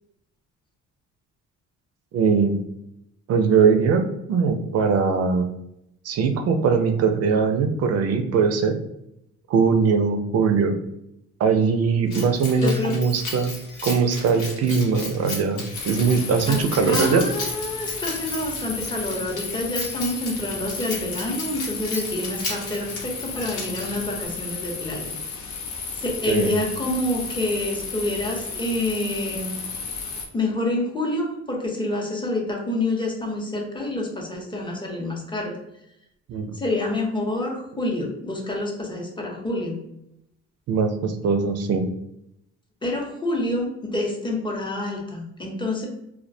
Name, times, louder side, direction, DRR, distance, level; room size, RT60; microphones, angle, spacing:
voice 1, 2.1-2.6 3.3-5.5 6.1-8.8 9.5-10.8 11.4-13.5 13.8-17.2 26.3-26.6 36.3-36.6 40.7-41.9, right 5 dB, 55° right, 7 dB, 0.4 m, -21 dB
Keys jangling, 12.1-24.2, left 2 dB, 85° left, 0.9 m, -35 dB
voice 2, 12.6-13.0 16.5-25.1 26.0-29.6 30.3-35.6 36.5-39.8 42.8-45.9, left 1 dB, 15° left, 0 dB, 0.6 m, -27 dB
sound 1, 15.7-30.3, left 5 dB, 70° left, 0.6 m, -33 dB
2.3 x 2.1 x 2.6 m, 0.79 s
cardioid pair, 90°, 30 cm